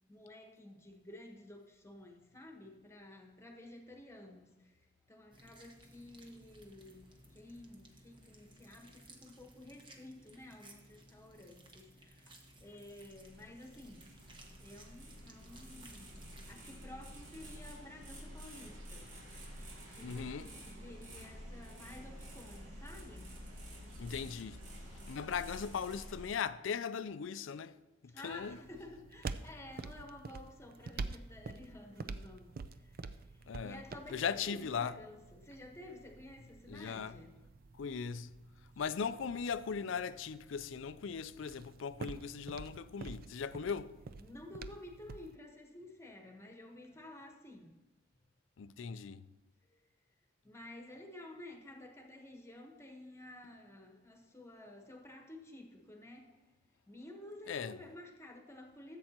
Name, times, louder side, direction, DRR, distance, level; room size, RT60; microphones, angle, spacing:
voice 1, 0.1-4.7 5.1-14.1 14.6-19.3 19.9-23.4 28.1-33.1 33.6-37.4 44.2-47.7 49.7-49.8 50.4-56.4 56.9-59.0, left 1 dB, 15° left, 1.2 m, -52 dB
sound 1, 5.3-16.6, right 1 dB, 25° right, 1.1 m, -59 dB
sound 2, 12.8-26.3, equal, 80° right, 2.4 m, -50 dB
voice 2, 20.0-20.5 24.0-24.6 25.1-27.7 28.2-28.6 33.5-33.8 34.1-34.9 36.7-37.2 37.8-38.3 38.8-43.9 48.6-49.2 57.5-57.8, left 6 dB, 75° left, 0.4 m, -38 dB
sound 3, 28.3-45.4, right 4 dB, 50° right, 0.4 m, -48 dB
15.0 x 7.7 x 2.9 m
head